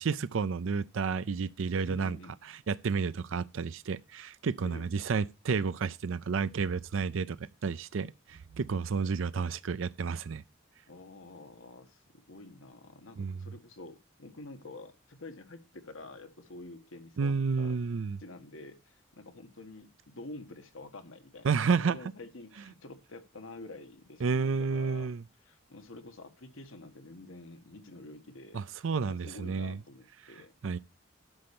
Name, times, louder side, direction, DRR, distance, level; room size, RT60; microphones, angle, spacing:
voice 1, 0.0-2.2 2.7-10.4 13.2-13.4 17.2-18.2 21.4-22.0 24.2-25.2 28.5-29.8 30.6-30.8, right 5 dB, 80° right, 0.5 m, -31 dB
voice 2, 1.8-2.4 4.6-4.9 10.9-17.8 18.2-25.1 25.4-28.6 29.0-30.5, left 2 dB, 85° left, 1.5 m, -48 dB
11.5 x 4.3 x 6.9 m
head